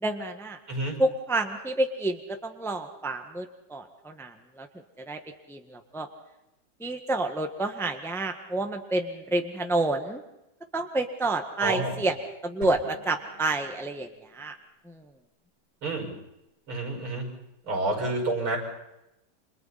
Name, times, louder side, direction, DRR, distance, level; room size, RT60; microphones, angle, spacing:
voice 1, 0.0-0.6 1.0-4.7 5.1-5.2 5.5-6.1 6.8-10.2 10.7-12.1 12.4-14.5 14.8-15.0, right 2 dB, ahead, 5 dB, 1.4 m, -29 dB
voice 2, 11.6-12.0 15.8-16.1 16.7-17.3 17.7-18.6, right 2 dB, 80° right, 2 dB, 7.1 m, -29 dB
sound 1, 12.6-14.3, right 2 dB, 65° right, 4.0 m, -46 dB
29.5 x 26.0 x 4.3 m, 0.89 s
omnidirectional pair, 2.3 m